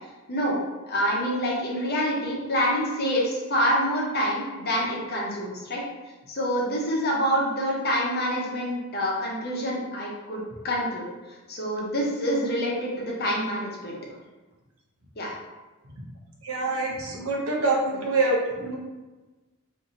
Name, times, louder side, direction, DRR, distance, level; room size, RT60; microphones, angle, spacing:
voice 1, 0.9-5.8 6.3-11.1 11.5-14.0 15.2-15.3, equal, 50° left, -3 dB, 0.8 m, -26 dB
voice 2, 16.4-18.8, right 2 dB, 80° right, -2 dB, 0.8 m, -25 dB
2.7 x 2.6 x 3.8 m, 1.2 s
head